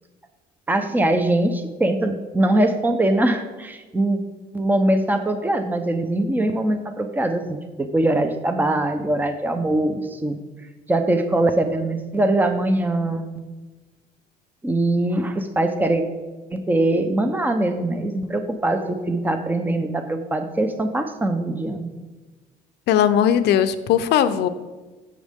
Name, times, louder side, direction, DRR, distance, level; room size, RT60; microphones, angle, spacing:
voice 1, 0.7-4.2 4.5-10.4 10.9-13.4 14.6-16.0 16.5-21.9, right 1 dB, 10° right, 7 dB, 0.8 m, -22 dB
voice 2, 22.9-24.5, left 9 dB, 80° left, 11 dB, 0.7 m, -18 dB
16.0 x 6.4 x 3.7 m, 1.2 s
cardioid pair, 110°, 17 cm